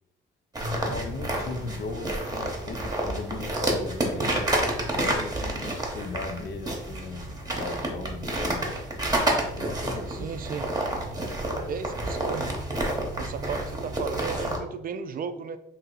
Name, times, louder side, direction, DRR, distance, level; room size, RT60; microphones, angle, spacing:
sound 1, 0.5-14.6, right 1 dB, 20° right, 0.9 m, -29 dB
voice 1, 0.8-4.4 4.9-8.9 9.5-10.3, left 3 dB, 55° left, 6 dB, 0.6 m, -37 dB
voice 2, 10.1-10.7 11.7-12.5 13.2-15.6, right 6 dB, 45° right, 10 dB, 0.4 m, -35 dB
2.8 x 2.8 x 4.0 m, 0.80 s
cardioid pair, 90°, 20 cm